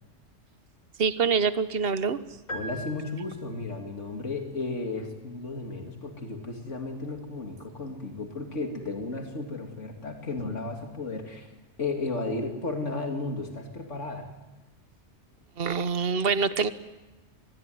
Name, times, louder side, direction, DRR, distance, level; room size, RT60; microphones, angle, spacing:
voice 1, 1.0-2.2 15.6-16.7, right 5 dB, 55° right, 12 dB, 1.3 m, -25 dB
voice 2, 2.5-11.5 11.8-14.3, left 3 dB, 80° left, 3 dB, 3.1 m, -34 dB
sound 1, 2.5-3.8, equal, 35° left, 2.6 m, -40 dB
27.0 x 20.5 x 9.4 m, 1.1 s
omnidirectional pair, 1.2 m